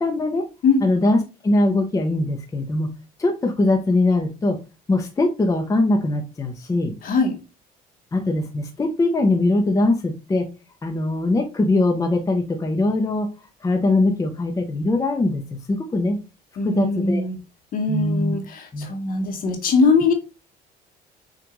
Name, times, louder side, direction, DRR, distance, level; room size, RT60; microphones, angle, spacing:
voice 1, 0.0-0.4 0.8-2.9 3.2-4.6 4.9-6.9 8.1-10.5 10.8-13.3 13.6-15.4 15.7-16.2 16.6-17.2 17.9-18.3 18.7-18.9, left 2 dB, 20° left, 0.7 m, -21 dB
voice 2, 7.0-7.4 16.6-17.4 17.7-20.1, left 4 dB, 55° left, 1.1 m, -21 dB
5.9 x 2.5 x 3.1 m
cardioid pair, 110°, 17 cm